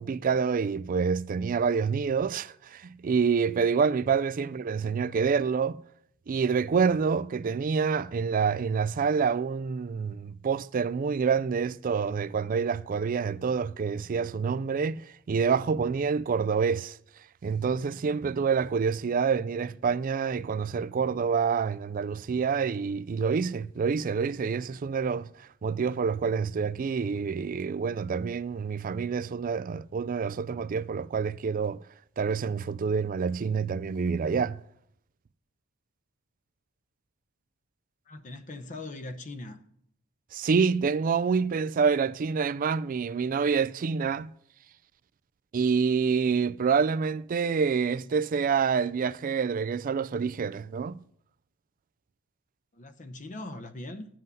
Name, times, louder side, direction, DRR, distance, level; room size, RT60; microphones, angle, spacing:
voice 1, 0.0-5.8 6.3-17.0 17.4-31.8 32.2-34.6 40.3-44.3 45.5-51.0, right 5 dB, 40° right, 0.3 m, -27 dB
voice 2, 38.1-39.6 52.7-54.1, left 2 dB, 35° left, 0.7 m, -40 dB
10.5 x 7.7 x 5.5 m
head